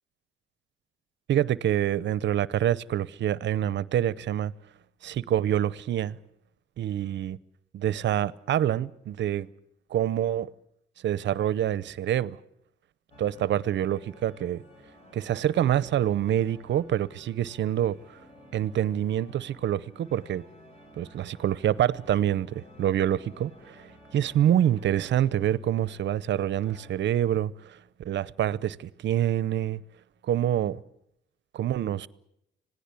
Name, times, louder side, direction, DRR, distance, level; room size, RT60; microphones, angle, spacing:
voice 1, 1.3-4.5 5.0-6.2 6.8-7.4 7.7-9.5 9.9-10.5 11.0-12.4 13.2-14.6 15.1-18.0 18.5-20.4 21.0-23.8 24.1-29.8 30.2-30.8 31.5-32.1, right 11 dB, 65° right, 0.8 m, -26 dB
sound 1, 13.1-27.0, equal, 30° left, 5.8 m, -53 dB
26.5 x 17.5 x 8.5 m
cardioid pair, 90°, 20 cm